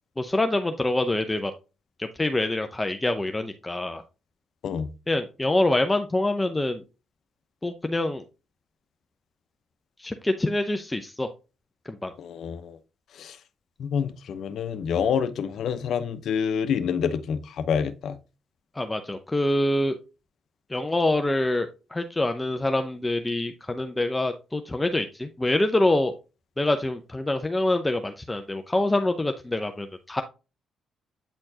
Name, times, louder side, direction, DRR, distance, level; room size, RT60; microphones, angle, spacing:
voice 1, 0.2-1.5 2.0-4.0 5.1-6.8 7.6-8.2 10.0-11.3 11.9-12.1 18.8-20.0 20.7-26.1 26.6-30.2, left 1 dB, 15° left, 0.6 m, -25 dB
voice 2, 12.2-12.8 13.1-13.4 13.8-18.2, left 7 dB, 65° left, 0.8 m, -27 dB
8.9 x 4.3 x 2.8 m
cardioid pair, 90°, 0 cm